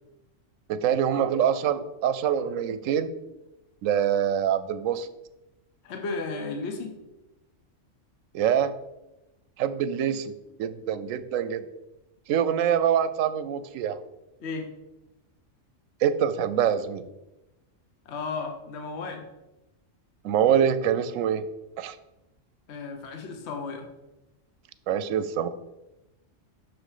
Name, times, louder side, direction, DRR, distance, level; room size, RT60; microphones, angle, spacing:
voice 1, 0.7-3.1 3.8-5.1 8.3-8.7 9.6-10.3 10.6-11.6 12.3-14.0 16.0-17.1 20.2-21.4 21.8-22.0 24.9-25.5, right 9 dB, 85° right, 13 dB, 1.0 m, -25 dB
voice 2, 5.8-6.9 14.4-14.7 18.0-19.2 22.7-23.9, left 4 dB, 60° left, 3 dB, 1.1 m, -34 dB
6.4 x 6.0 x 4.9 m, 0.99 s
omnidirectional pair, 1.3 m